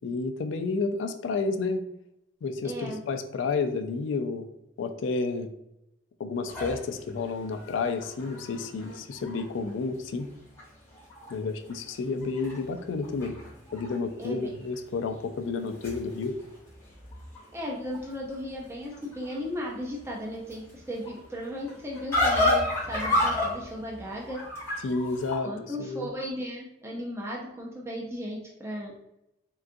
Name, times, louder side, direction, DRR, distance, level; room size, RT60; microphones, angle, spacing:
voice 1, 0.0-1.8 2.4-4.5 4.8-5.5 6.2-10.3 11.3-13.3 13.7-16.3 24.8-25.5 25.8-26.1, left 4 dB, 70° left, 7 dB, 0.3 m, -30 dB
voice 2, 2.6-3.0 14.2-14.4 17.5-24.4 25.4-28.9, equal, 15° right, -3 dB, 0.5 m, -36 dB
sound 1, 6.5-9.7 10.2-10.3 10.6-11.4 11.6-13.9 14.2-14.7 15.4-25.4, left 1 dB, 15° left, 0.8 m, -32 dB
3.7 x 2.3 x 2.5 m, 0.84 s
head